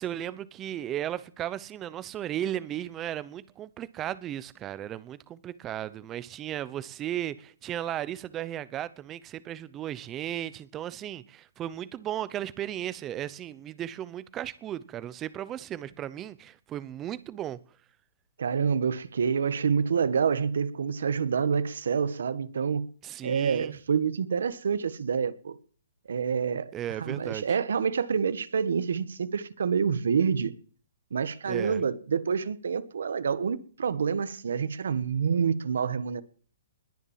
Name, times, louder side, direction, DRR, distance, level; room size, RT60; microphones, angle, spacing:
voice 1, 0.0-17.6 23.0-23.8 26.7-27.6 31.5-31.8, right 11 dB, 15° right, 0.8 m, -35 dB
voice 2, 18.4-22.9 23.2-25.6 26.1-26.7 27.0-30.5 31.1-36.2, right 6 dB, 80° right, 1.5 m, -27 dB
20.5 x 7.2 x 7.4 m
hypercardioid pair, 170°, 0 cm